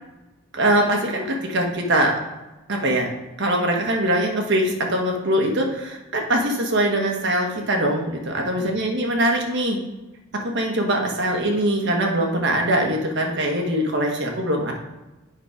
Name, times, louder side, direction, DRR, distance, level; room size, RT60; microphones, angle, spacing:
voice 1, 0.5-2.1 2.7-3.1 3.4-9.8 10.3-14.7, right 1 dB, 55° right, 1 dB, 1.3 m, -22 dB
8.1 x 4.5 x 5.0 m, 1.1 s
head